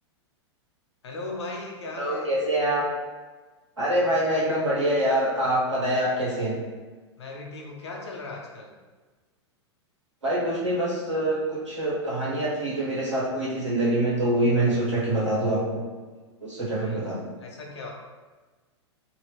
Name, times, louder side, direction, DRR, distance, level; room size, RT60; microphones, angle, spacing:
voice 1, 1.0-2.3 3.9-4.1 7.2-8.8 16.8-17.0 17.4-17.9, left 2 dB, 70° left, 0 dB, 0.8 m, -37 dB
voice 2, 2.0-2.8 3.8-6.5 10.2-15.8 16.4-17.2, right 1 dB, 90° right, -6 dB, 1.2 m, -25 dB
2.8 x 2.7 x 3.1 m, 1.3 s
figure-of-eight pair, 100°, 15 cm